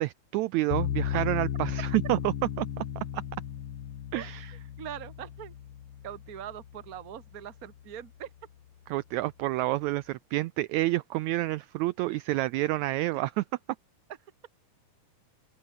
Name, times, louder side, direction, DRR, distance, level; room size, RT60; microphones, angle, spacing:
voice 1, 0.0-2.9 3.1-3.2 4.1-4.6 8.9-13.4, right 17 dB, 80° right, 1.7 m, -29 dB
sound 1, 0.7-7.8, left 10 dB, 55° left, 1.7 m, -35 dB
voice 2, 4.8-5.5 6.0-8.3 13.1-13.2, right 10 dB, 40° right, 1.2 m, -42 dB
open air
omnidirectional pair, 3.8 m